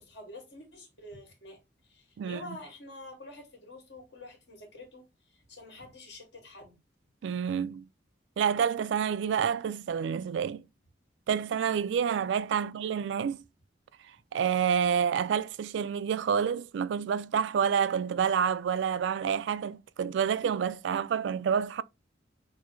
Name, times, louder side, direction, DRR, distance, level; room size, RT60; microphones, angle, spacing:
voice 1, 0.0-6.8 12.6-12.7, left 2 dB, 70° left, 1.7 m, -48 dB
voice 2, 2.2-2.6 7.2-7.8 8.4-10.6 11.3-13.4 14.3-21.8, right 7 dB, 80° right, 0.3 m, -28 dB
6.2 x 2.1 x 2.6 m
head